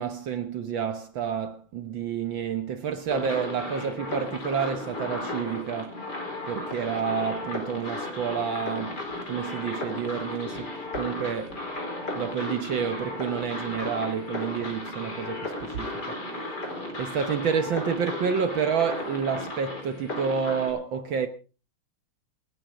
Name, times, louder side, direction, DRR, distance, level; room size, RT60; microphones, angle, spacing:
voice 1, 0.0-6.0 6.5-9.0 9.3-11.6 12.2-16.2 16.4-16.6 17.0-21.3, right 6 dB, 65° right, 1.7 m, -29 dB
sound 1, 3.1-20.7, left 2 dB, 45° left, 4.7 m, -35 dB
28.0 x 9.5 x 3.7 m
omnidirectional pair, 2.4 m